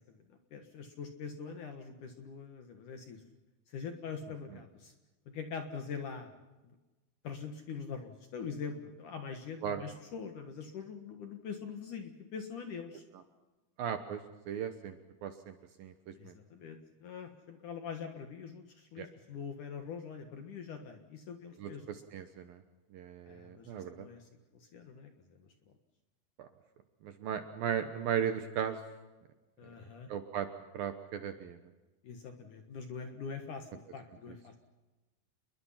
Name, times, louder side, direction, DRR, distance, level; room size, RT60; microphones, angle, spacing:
voice 1, 0.1-3.2 3.7-4.9 5.3-6.4 6.6-6.8 7.2-13.0 16.2-22.0 23.3-25.1 25.4-25.5 29.6-30.1 32.0-34.6, left 6 dB, 60° left, 6 dB, 2.3 m, -44 dB
voice 2, 13.8-14.2 14.5-15.0 15.2-16.3 19.0-19.1 21.6-22.6 22.9-24.1 26.4-26.5 27.0-28.8 30.1-30.5 30.7-31.6, right 9 dB, 70° right, 8 dB, 2.4 m, -36 dB
29.0 x 22.0 x 5.8 m, 1.1 s
omnidirectional pair, 5.3 m